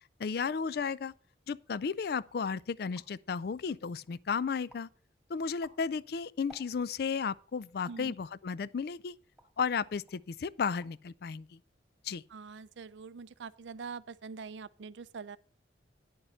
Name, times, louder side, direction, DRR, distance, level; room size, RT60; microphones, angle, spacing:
voice 1, 0.2-1.1 1.5-4.9 5.3-9.1 9.6-11.6 12.0-12.2, left 5 dB, 55° left, 0.4 m, -34 dB
sound 1, 1.7-2.0 2.5-2.6 2.8-3.3 3.8-4.3 4.7-5.0 5.4-7.1 7.8-8.1 8.8-9.7 10.1-10.3 10.6-11.1 11.3-11.8, right 1 dB, ahead, 1.8 m, -59 dB
voice 2, 12.3-15.4, right 5 dB, 80° right, 0.5 m, -44 dB
10.0 x 6.6 x 5.6 m
head